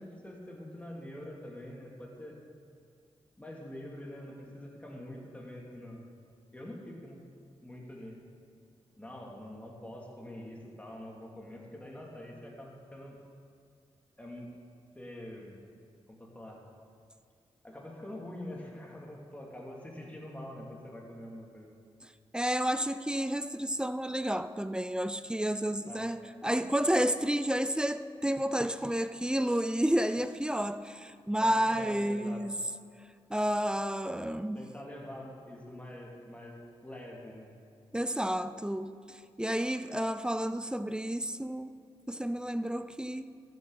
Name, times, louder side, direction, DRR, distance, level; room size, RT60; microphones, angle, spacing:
voice 1, 0.0-2.4 3.4-6.1 6.5-7.2 7.6-8.2 9.0-13.2 14.2-14.6 14.9-15.6 16.1-16.6 17.6-21.7 25.9-26.1 31.4-32.5 34.5-37.5, left 1 dB, 10° left, 2.4 m, -45 dB
voice 2, 22.3-32.5 33.3-34.6 37.9-41.7 42.1-43.2, equal, 5° right, 0.4 m, -31 dB
13.0 x 7.6 x 3.9 m
cardioid pair, 50°, 11 cm